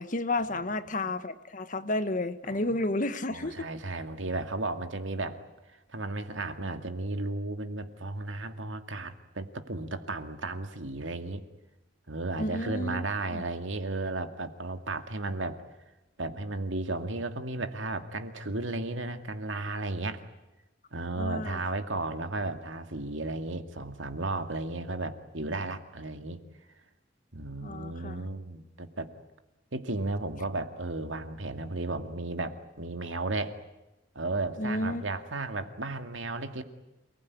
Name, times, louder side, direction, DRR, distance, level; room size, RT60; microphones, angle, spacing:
voice 1, 0.0-3.5 12.4-13.0 13.3-13.4 21.2-21.6 27.6-28.3 34.6-35.0, left 2 dB, 45° left, 11 dB, 1.4 m, -31 dB
voice 2, 2.5-2.8 3.3-5.4 5.9-11.4 12.1-15.6 16.2-20.2 20.9-26.4 27.3-29.1 29.7-33.6 34.1-36.6, right 2 dB, 90° right, 7 dB, 2.3 m, -34 dB
28.5 x 20.5 x 9.7 m, 1.0 s
head